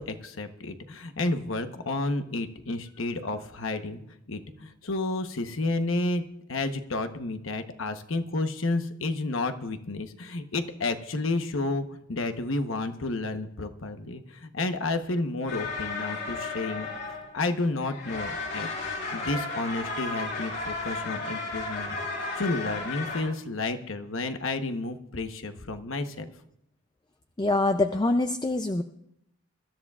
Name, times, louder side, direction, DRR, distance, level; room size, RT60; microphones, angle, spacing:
voice 1, 0.0-4.0 4.3-6.2 6.5-16.9 17.3-18.7 19.1-26.3, left 2 dB, 90° left, 8 dB, 1.1 m, -31 dB
sound 1, 15.5-17.6 17.8-23.2, left 3 dB, 65° left, 6.8 m, -34 dB
voice 2, 27.4-28.8, left 2 dB, 20° left, 8 dB, 0.4 m, -24 dB
24.0 x 13.5 x 2.4 m, 0.78 s
head